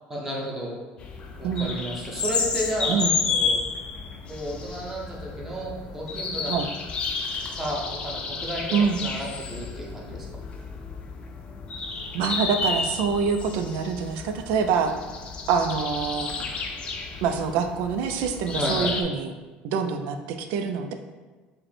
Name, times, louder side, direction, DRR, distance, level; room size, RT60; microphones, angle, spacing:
voice 1, 0.1-0.7 1.4-3.6 4.3-6.5 7.5-10.3 18.6-18.9, equal, 10° right, -4 dB, 0.9 m, -32 dB
sound 1, 1.0-19.0, left 4 dB, 30° left, 0.5 m, -31 dB
voice 2, 1.4-1.7 2.9-3.1 6.5-6.7 8.7-9.0 12.1-14.9 15.5-16.3 17.2-19.3 19.6-20.9, right 6 dB, 75° right, 7 dB, 0.4 m, -25 dB
5.1 x 2.1 x 4.3 m, 1.3 s
cardioid pair, 150°, 3 cm